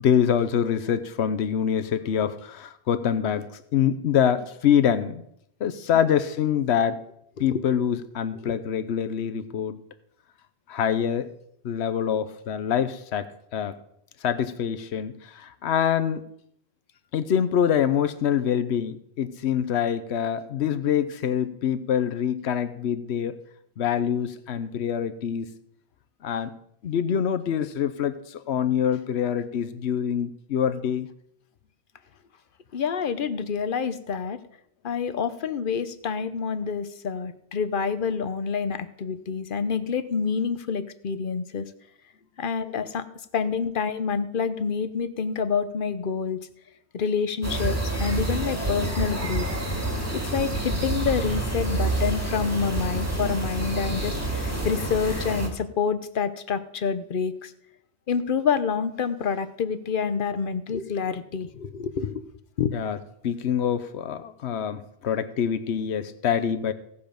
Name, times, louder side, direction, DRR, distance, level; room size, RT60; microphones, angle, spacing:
voice 1, 0.0-5.2 5.6-7.0 7.4-9.8 10.7-11.3 11.6-13.8 14.2-16.3 17.1-23.4 23.8-25.5 26.2-26.5 26.8-31.1 62.7-63.0 63.2-66.7, left 8 dB, 85° left, 11 dB, 1.0 m, -25 dB
voice 2, 32.7-34.4 34.8-41.7 42.4-43.0 43.3-46.5 46.9-49.5 50.1-57.5 58.1-62.2 62.6-62.7, left 6 dB, 55° left, 12 dB, 1.0 m, -27 dB
sound 1, 47.4-55.5, right 2 dB, 15° right, 2.1 m, -28 dB
17.0 x 7.0 x 5.1 m, 0.72 s
omnidirectional pair, 1.1 m